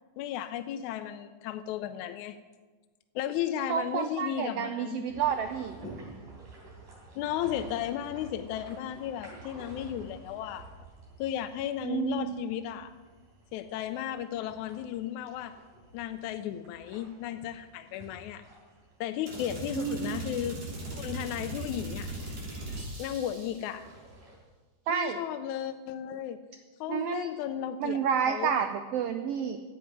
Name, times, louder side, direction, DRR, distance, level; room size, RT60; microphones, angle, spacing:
voice 1, 0.2-2.4 3.2-5.1 7.2-10.7 11.2-12.9 13.5-15.5 15.9-18.4 19.0-20.6 20.9-22.2 23.0-23.9 24.9-26.4 26.8-28.7, left 11 dB, 80° left, 9 dB, 1.9 m, -34 dB
voice 2, 3.7-5.7 11.8-12.4 19.7-20.2 24.9-25.2 26.9-27.3 27.8-29.6, right 8 dB, 90° right, 7 dB, 1.3 m, -30 dB
Paddling a Kayak, 5.1-24.3, right 2 dB, 70° right, 4.9 m, -51 dB
sound 1, 19.3-23.7, right 2 dB, 50° right, 4.1 m, -39 dB
10.5 x 7.6 x 9.4 m, 1.4 s
omnidirectional pair, 3.5 m